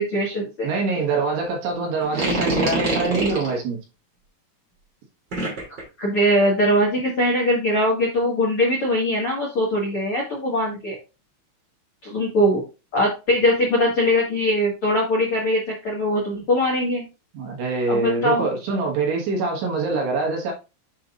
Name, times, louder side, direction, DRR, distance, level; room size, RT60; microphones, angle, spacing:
voice 1, 0.0-0.7 6.0-11.0 12.0-12.6 12.9-17.0 17.9-18.5, left 1 dB, 80° left, 1.2 m, -21 dB
voice 2, 0.6-3.8 17.3-20.5, right 3 dB, 65° right, 3.2 m, -24 dB
sound 1, 2.0-3.5 5.3-5.8, right 2 dB, 30° right, 2.3 m, -24 dB
7.9 x 5.7 x 2.4 m
omnidirectional pair, 5.6 m